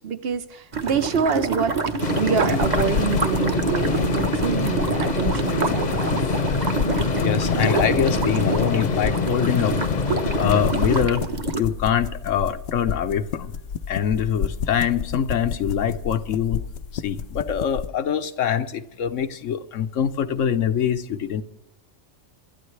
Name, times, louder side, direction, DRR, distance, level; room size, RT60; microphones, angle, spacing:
voice 1, 0.0-1.8 2.1-6.2, right 6 dB, 55° right, 0.9 m, -26 dB
sound 1, 0.7-11.6, right 4 dB, 35° right, 1.2 m, -27 dB
sound 2, 2.0-11.0, left 5 dB, 40° left, 0.9 m, -25 dB
sound 3, 2.5-17.9, left 7 dB, 65° left, 0.9 m, -31 dB
voice 2, 7.2-10.1 10.4-11.3 11.6-13.5 13.9-16.6 16.9-21.4, left 8 dB, 80° left, 1.2 m, -24 dB
26.0 x 12.5 x 3.2 m
omnidirectional pair, 1.3 m